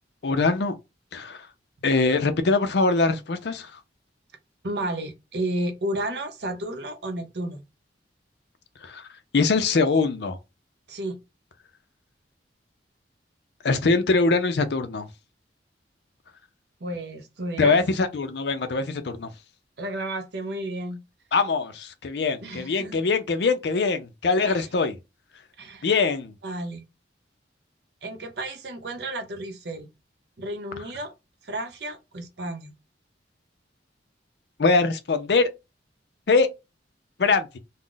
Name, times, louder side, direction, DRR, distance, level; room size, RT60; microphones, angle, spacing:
voice 1, 0.2-0.8 1.1-1.4 1.8-3.7 8.8-9.0 9.3-10.4 13.6-15.1 17.6-19.3 21.3-25.0 25.8-26.3 34.6-35.5 36.3-36.5 37.2-37.6, left 4 dB, 65° left, 0.5 m, -22 dB
voice 2, 4.6-7.6 10.9-11.2 16.8-17.8 19.8-21.0 22.4-23.0 24.4-24.7 25.6-25.9 26.4-26.9 28.0-29.9 30.4-31.1 31.4-32.7, right 1 dB, 65° right, 0.6 m, -32 dB
2.4 x 2.0 x 3.7 m
head